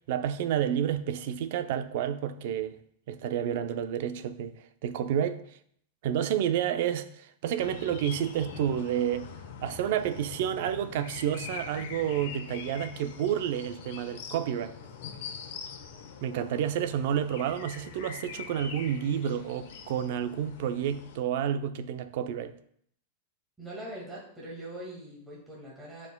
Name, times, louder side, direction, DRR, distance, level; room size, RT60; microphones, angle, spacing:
voice 1, 0.1-2.8 3.1-4.5 4.8-5.5 6.0-9.3 9.6-14.8 16.2-22.5, right 9 dB, 60° right, 0.5 m, -30 dB
sound 1, 7.6-21.2, left 6 dB, 65° left, 0.9 m, -43 dB
voice 2, 23.6-26.1, right 1 dB, 10° right, 1.9 m, -42 dB
12.0 x 4.7 x 2.2 m
supercardioid pair, 145°, 0 cm